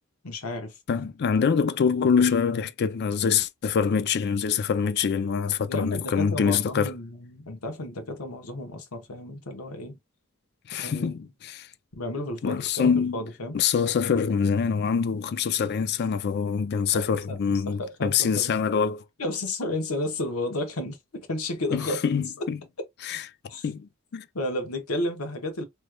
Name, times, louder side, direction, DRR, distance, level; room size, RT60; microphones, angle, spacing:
voice 1, 0.2-0.7 5.7-10.0 10.8-11.2 11.9-13.6 16.9-18.5 19.2-22.1 22.4-22.5 23.5-23.7 24.3-25.6, left 1 dB, 90° left, 1.1 m, -32 dB
voice 2, 0.9-6.9 10.7-11.7 12.4-13.2 13.5-19.0 21.7-22.6 23.0-23.2 23.6-24.2, left 6 dB, 50° left, 0.4 m, -25 dB
3.3 x 3.1 x 2.2 m
head